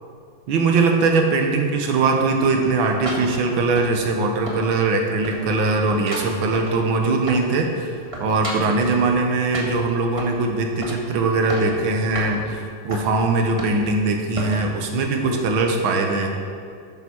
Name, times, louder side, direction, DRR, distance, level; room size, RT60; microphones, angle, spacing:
voice 1, 0.5-16.3, right 3 dB, 70° right, 3 dB, 1.8 m, -21 dB
sound 1, 2.4-4.2 4.5-5.0 5.2-7.6 7.9-9.0 9.5-10.4 10.8-11.1 11.3-11.8 12.2-12.3 12.9-13.1 13.6-14.0 14.4-14.7 15.2-15.4, equal, 20° right, 1.3 m, -33 dB
9.5 x 7.8 x 6.2 m, 2.3 s
omnidirectional pair, 2.4 m